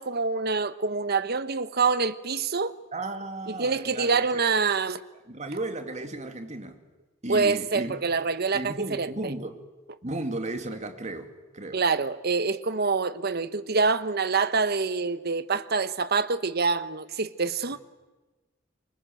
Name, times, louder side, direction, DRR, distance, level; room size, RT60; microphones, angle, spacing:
voice 1, 0.0-2.7 3.5-5.0 7.3-9.3 11.7-17.8, right 4 dB, 50° right, 1.1 m, -26 dB
voice 2, 2.9-4.2 5.3-6.8 7.2-8.0 8.5-9.6 10.0-11.8, right 2 dB, 35° right, 2.4 m, -34 dB
27.5 x 24.5 x 7.8 m
head